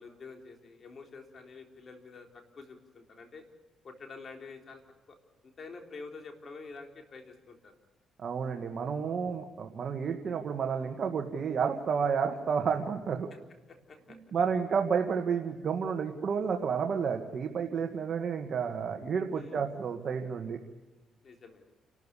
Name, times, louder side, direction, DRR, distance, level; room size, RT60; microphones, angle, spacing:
voice 1, 0.0-3.4 3.8-4.8 5.1-5.2 5.4-7.7 13.3-13.4 13.9-14.2 19.3-19.6 21.2-21.7, left 4 dB, 45° left, 4 dB, 3.8 m, -48 dB
voice 2, 8.2-13.3 14.1-20.6, right 6 dB, 55° right, 3 dB, 1.8 m, -31 dB
28.5 x 13.0 x 8.4 m, 1.2 s
cardioid pair, 90°, 0 cm